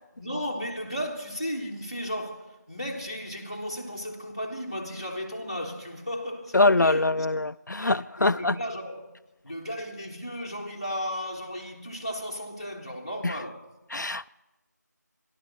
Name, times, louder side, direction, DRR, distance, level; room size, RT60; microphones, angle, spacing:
voice 1, 0.1-7.3 7.8-9.1 9.4-13.7, equal, 20° left, 1.2 m, -35 dB
voice 2, 6.5-8.5 13.2-13.3 13.9-14.3, left 2 dB, 80° left, 0.4 m, -23 dB
30.0 x 11.5 x 3.2 m
figure-of-eight pair, 180°, 10 cm